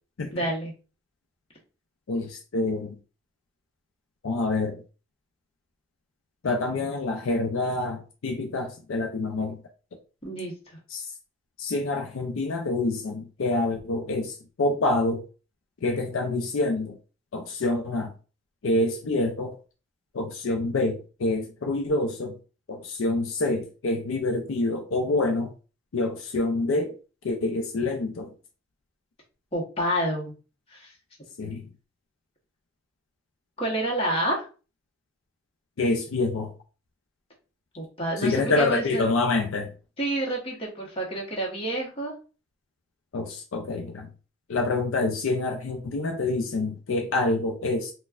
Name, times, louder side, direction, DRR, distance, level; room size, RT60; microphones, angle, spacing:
voice 1, 0.3-0.7 10.2-10.5 29.5-30.4 30.7-30.9 33.6-34.5 37.8-39.1 40.0-42.1, right 1 dB, 30° left, 1.0 m, -28 dB
voice 2, 2.1-2.9 4.2-4.8 6.4-9.6 10.9-11.1 11.6-15.2 15.8-17.0 17.3-18.1 18.6-19.5 20.1-22.4 22.7-25.5 25.9-27.0 27.2-28.3 31.4-31.6 35.8-36.5 38.2-39.7 43.1-44.1 44.5-47.9, left 2 dB, 75° left, 0.5 m, -27 dB
4.1 x 2.2 x 2.3 m
head